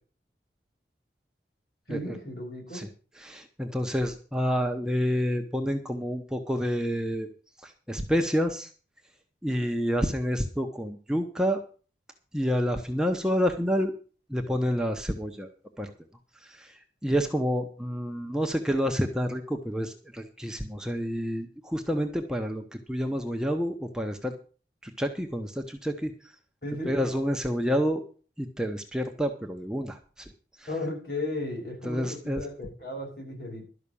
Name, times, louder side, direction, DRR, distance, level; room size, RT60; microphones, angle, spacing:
voice 1, 1.9-2.9 26.6-26.9 30.7-33.7, left 1 dB, 60° left, 0 dB, 6.8 m, -35 dB
voice 2, 3.2-7.3 7.6-8.7 9.4-11.6 12.3-13.9 14.3-15.5 15.8-15.9 16.4-24.3 24.8-26.3 26.8-28.0 28.4-30.3 30.6-30.7 31.8-32.5, equal, 5° right, 4 dB, 1.0 m, -29 dB
12.5 x 5.9 x 8.5 m, 0.38 s
head